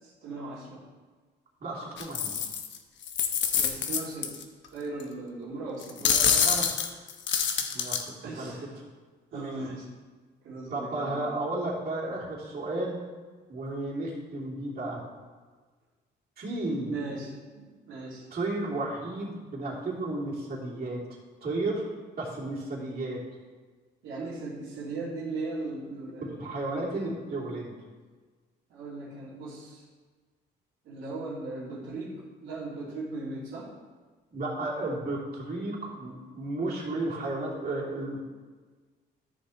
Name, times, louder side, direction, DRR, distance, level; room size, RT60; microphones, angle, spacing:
voice 1, 0.2-0.8 3.6-4.3 4.7-6.0 6.2-6.4 8.2-8.7 9.3-9.9 10.4-11.3 16.9-18.2 24.0-26.3 28.7-29.8 30.8-32.2 32.4-33.7, right 3 dB, 85° right, -8 dB, 2.8 m, -38 dB
voice 2, 1.6-2.3 6.0-6.7 7.5-8.5 9.3-9.7 10.7-13.0 13.5-15.0 16.4-16.9 18.3-21.0 21.4-21.9 22.2-23.2 26.2-27.7 34.3-38.2, right 2 dB, 50° right, -7 dB, 3.1 m, -33 dB
sound 1, 2.0-2.8 3.0-4.4 5.0-5.1 5.8-8.0, left 7 dB, 70° left, 0.9 m, -26 dB
13.0 x 6.6 x 3.2 m, 1.4 s
cardioid pair, 90°, 20 cm